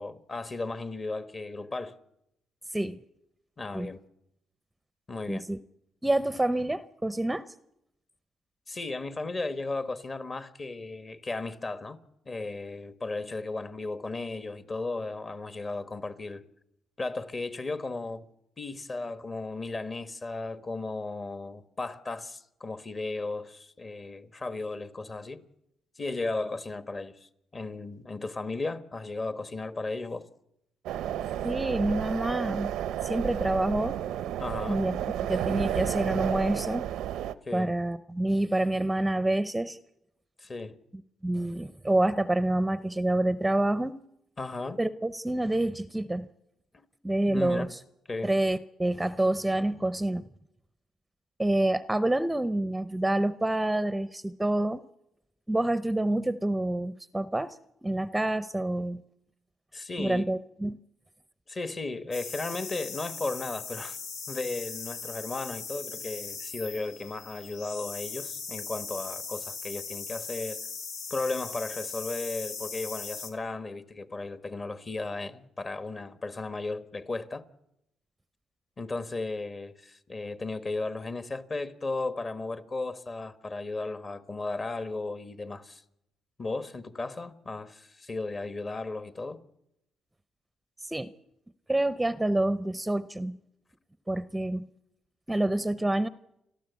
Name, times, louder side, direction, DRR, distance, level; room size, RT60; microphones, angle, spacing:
voice 1, 0.0-1.9 3.6-4.0 5.1-5.4 8.7-12.0 12.2-16.4 17.0-18.3 18.6-25.4 26.0-30.3 34.4-34.8 37.4-37.7 40.4-40.8 44.4-44.8 46.7-46.8 47.2-47.7 48.1-48.3 59.7-60.2 61.5-64.0 64.3-70.6 71.1-77.4 78.8-85.8 86.4-89.4, left 3 dB, 35° left, 1.4 m, -35 dB
voice 2, 5.3-5.6 6.0-7.4 31.4-32.7 33.0-34.0 34.7-35.0 35.3-36.9 37.5-39.8 41.2-44.0 44.8-46.3 47.0-47.8 48.2-50.2 51.4-54.8 55.5-57.6 57.8-59.0 60.0-60.8 90.8-91.1 91.7-93.4 94.1-94.7 95.3-96.1, right 1 dB, 10° right, 0.7 m, -27 dB
sound 1, 30.9-37.3, right 11 dB, 90° right, 0.7 m, -32 dB
sound 2, 62.1-73.3, left 5 dB, 85° left, 2.4 m, -39 dB
30.0 x 12.5 x 8.2 m
cardioid pair, 90°, 0 cm